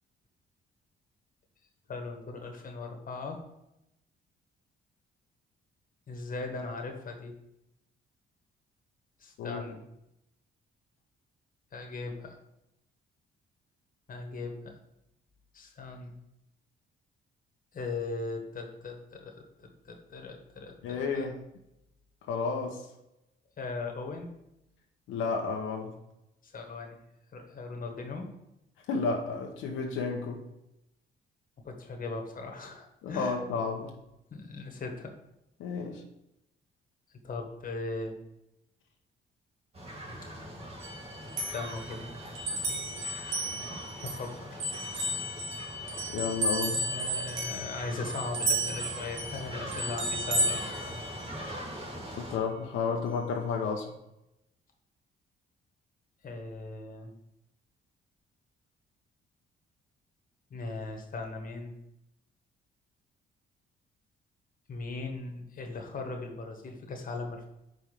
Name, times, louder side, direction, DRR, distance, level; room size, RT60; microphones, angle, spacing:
voice 1, 1.9-3.4 6.1-7.3 9.2-9.8 11.7-12.4 14.1-14.7 15.5-16.1 17.7-21.3 23.6-24.3 26.4-27.0 27.3-28.3 31.6-33.4 34.3-35.1 37.2-38.2 41.4-42.1 44.0-44.6 46.7-50.9 56.2-57.1 60.5-61.7 64.7-67.5, left 3 dB, 45° left, 3 dB, 1.4 m, -39 dB
voice 2, 20.8-21.4 22.3-22.8 25.1-25.9 28.9-30.4 33.0-33.9 35.6-36.0 46.1-46.8 52.2-53.9, left 5 dB, 85° left, 2 dB, 0.9 m, -31 dB
sound 1, 39.7-52.4, equal, 30° right, 1.9 m, -42 dB
sound 2, 40.8-44.3 44.6-51.5, right 1 dB, 70° right, 1.8 m, -33 dB
5.1 x 4.4 x 5.9 m, 0.87 s
cardioid pair, 90°, 20 cm